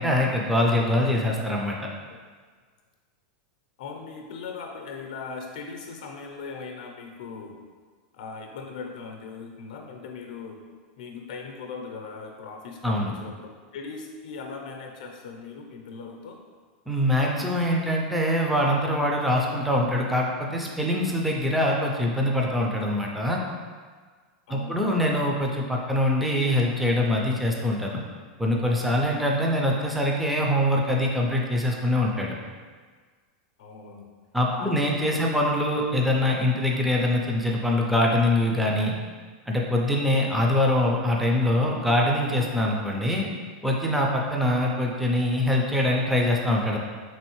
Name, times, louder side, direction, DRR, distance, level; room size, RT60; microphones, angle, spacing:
voice 1, 0.0-1.8 12.8-13.1 16.9-23.4 24.5-28.0 28.4-32.3 34.3-38.9 39.5-43.3 43.6-46.8, left 1 dB, ahead, -2 dB, 0.3 m, -24 dB
voice 2, 3.8-7.6 8.1-10.6 11.0-16.4 24.5-24.8 33.6-34.1 34.5-34.8 35.1-35.2, left 5 dB, 75° left, 2 dB, 0.5 m, -39 dB
3.8 x 3.1 x 3.0 m, 1.5 s
supercardioid pair, 160°, 4 cm